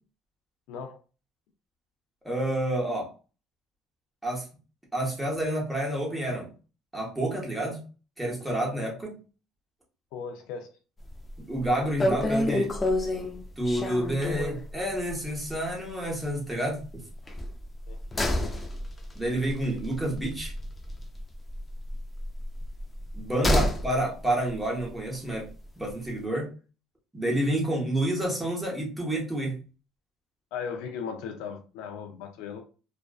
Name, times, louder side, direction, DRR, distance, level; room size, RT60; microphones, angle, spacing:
voice 1, 0.7-1.0 10.1-10.7 17.9-18.0 23.4-23.6 30.5-32.6, left 6 dB, 80° left, 4 dB, 0.4 m, -37 dB
voice 2, 2.2-3.1 4.2-4.4 4.9-6.5 6.9-7.8 8.2-9.2 11.4-12.7 13.6-17.1 19.1-20.5 23.1-25.5 25.8-26.5 27.1-29.6, right 1 dB, 5° right, -2 dB, 0.9 m, -29 dB
sound 1, 11.1-11.4 11.6-11.7 12.0-14.7 15.1-15.2 15.5-15.6 17.3-21.2 21.5-23.9 24.2-24.3, left 1 dB, 20° left, 0.4 m, -28 dB
2.4 x 2.2 x 2.3 m, 0.35 s
cardioid pair, 110°, 0 cm